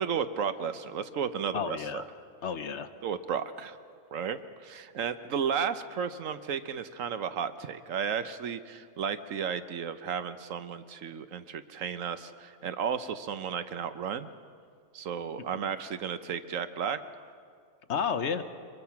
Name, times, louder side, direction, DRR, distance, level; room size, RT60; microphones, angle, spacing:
voice 1, 0.0-2.0 3.0-3.8 4.1-14.3 14.9-17.0, right 7 dB, 70° right, 11 dB, 1.2 m, -33 dB
voice 2, 1.5-2.0 2.4-2.9 15.5-15.8 17.9-18.4, left 6 dB, 60° left, 10 dB, 1.0 m, -32 dB
23.5 x 22.5 x 5.8 m, 2.2 s
omnidirectional pair, 1.5 m